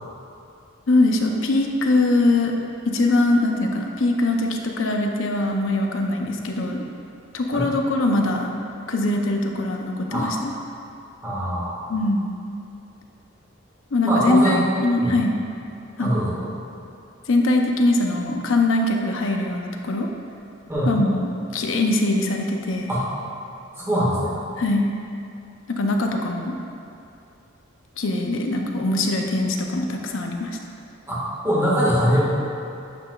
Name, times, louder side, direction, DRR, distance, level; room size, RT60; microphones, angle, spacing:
voice 1, 0.9-2.5 2.9-6.8 7.3-8.5 8.9-10.5 11.9-12.3 13.9-15.4 16.0-16.1 17.3-20.1 20.8-22.9 24.6-24.9 25.7-26.6 28.0-30.6, left 2 dB, 70° left, 2 dB, 0.7 m, -22 dB
voice 2, 11.2-11.8 14.0-14.6 15.0-15.1 16.0-16.4 20.7-21.0 22.9-23.0 23.8-24.4 31.1-32.2, equal, 15° right, -8 dB, 1.6 m, -23 dB
10.5 x 5.7 x 2.4 m, 2.6 s
head